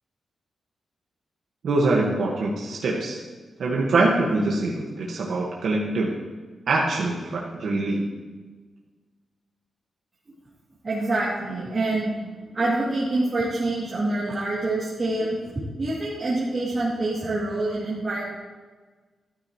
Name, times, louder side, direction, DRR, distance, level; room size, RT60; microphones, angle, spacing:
voice 1, 1.6-3.2 3.6-6.1 6.7-8.1, right 2 dB, 70° right, -3 dB, 1.6 m, -24 dB
voice 2, 10.8-12.1 12.5-15.4 15.8-18.2, right 2 dB, 30° right, -10 dB, 2.8 m, -26 dB
13.5 x 12.5 x 3.2 m, 1.4 s
wide cardioid pair, 155°, 0 cm